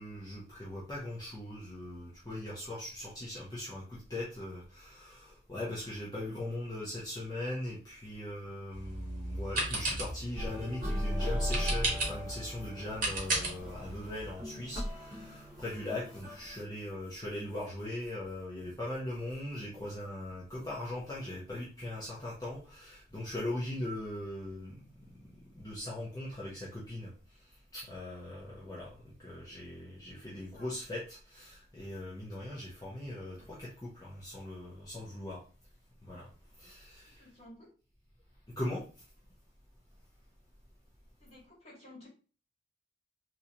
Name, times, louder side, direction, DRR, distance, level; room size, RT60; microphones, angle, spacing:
voice 1, 0.0-24.7 25.5-27.1 27.7-35.4 36.0-36.3 36.6-37.3 38.6-38.9, left 1 dB, 20° left, 0.9 m, -40 dB
sound 1, 8.7-14.3, right 2 dB, 50° right, 1.3 m, -36 dB
sound 2, 10.4-16.5, equal, 20° right, 1.9 m, -38 dB
voice 2, 30.2-30.7 37.2-37.7 41.2-42.1, left 1 dB, 35° left, 1.7 m, -54 dB
3.9 x 2.8 x 2.8 m
head